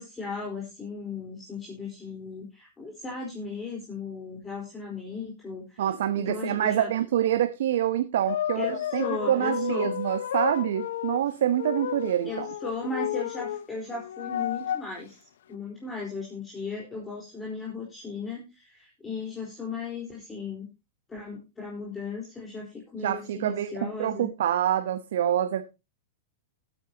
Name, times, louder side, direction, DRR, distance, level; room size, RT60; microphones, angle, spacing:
voice 1, 0.0-5.8 6.2-6.9 8.5-9.9 12.3-20.7 21.1-24.3, left 4 dB, 15° left, -3 dB, 4.3 m, -36 dB
voice 2, 5.8-12.5 23.0-25.6, right 11 dB, 70° right, 10 dB, 0.9 m, -26 dB
sound 1, 8.3-11.2 11.6-13.7 13.9-14.9 15.5-15.6, left 11 dB, 70° left, 0.7 m, -32 dB
16.0 x 9.1 x 2.9 m, 0.26 s
hypercardioid pair, 105°, 0 cm